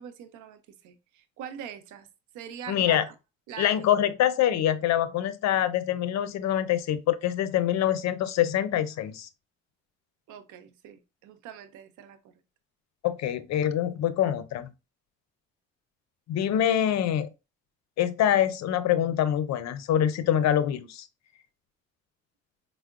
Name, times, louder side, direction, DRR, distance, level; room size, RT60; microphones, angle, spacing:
voice 1, 0.0-2.1 2.3-3.1 3.5-4.0 10.3-12.2, right 8 dB, 80° right, 0.6 m, -43 dB
voice 2, 2.7-3.0 3.6-9.3 13.0-14.7 16.3-17.3 18.0-21.1, left 11 dB, 65° left, 0.5 m, -25 dB
4.4 x 2.1 x 2.3 m
supercardioid pair, 65°, 30 cm